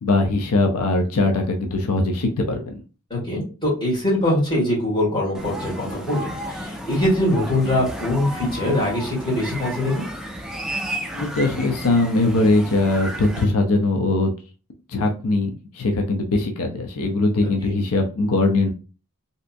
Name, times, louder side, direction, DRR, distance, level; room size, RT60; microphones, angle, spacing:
voice 1, 0.0-2.6 11.1-14.3 14.9-18.7, left 2 dB, 90° left, 3 dB, 0.6 m, -21 dB
voice 2, 3.1-10.0 17.6-17.7, left 1 dB, 20° left, -6 dB, 1.8 m, -23 dB
sound 1, 5.3-13.4, right 1 dB, ahead, 0.3 m, -33 dB
3.3 x 2.8 x 2.5 m, 0.35 s
head